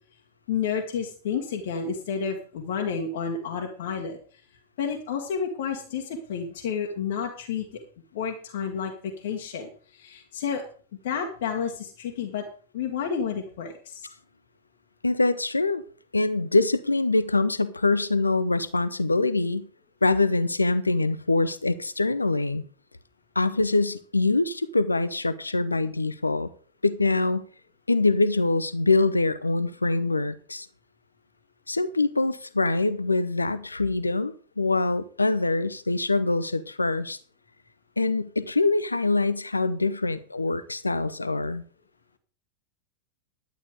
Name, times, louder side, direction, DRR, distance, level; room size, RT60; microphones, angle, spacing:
voice 1, 0.5-4.2 4.8-7.6 8.1-10.6 11.0-12.4 12.7-14.1, left 6 dB, 55° left, 1.8 m, -30 dB
voice 2, 15.0-15.8 16.1-19.7 20.0-22.6 23.3-26.5 26.8-27.4 27.9-30.7 31.7-37.2 38.0-41.6, left 3 dB, 80° left, 0.8 m, -24 dB
11.5 x 9.1 x 4.9 m
figure-of-eight pair, 90°, 0 cm